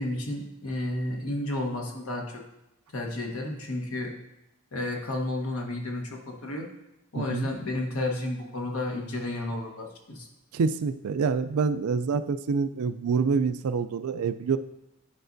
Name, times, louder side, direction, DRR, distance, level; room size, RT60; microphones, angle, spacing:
voice 1, 0.0-2.4 2.9-4.1 4.7-6.7 7.1-10.3, left 1 dB, 70° left, 1 dB, 1.2 m, -32 dB
voice 2, 7.2-7.5 10.5-14.6, right 5 dB, 80° right, 12 dB, 0.4 m, -26 dB
10.0 x 5.2 x 2.6 m, 0.90 s
head